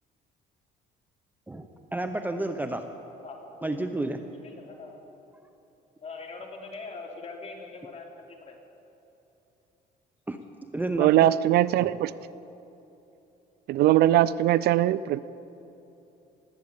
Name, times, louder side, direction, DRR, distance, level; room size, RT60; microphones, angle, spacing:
voice 1, 1.5-2.8 3.6-4.2 10.3-10.4 10.7-11.3 11.8-11.9, right 2 dB, 10° right, 7 dB, 0.7 m, -31 dB
voice 2, 3.2-3.7 4.3-5.0 6.0-8.6, left 3 dB, 40° left, 0 dB, 3.0 m, -42 dB
voice 3, 11.0-12.1 13.7-15.2, right 13 dB, 70° right, 18 dB, 0.4 m, -21 dB
20.0 x 8.4 x 8.1 m, 3.0 s
cardioid pair, 110°, 17 cm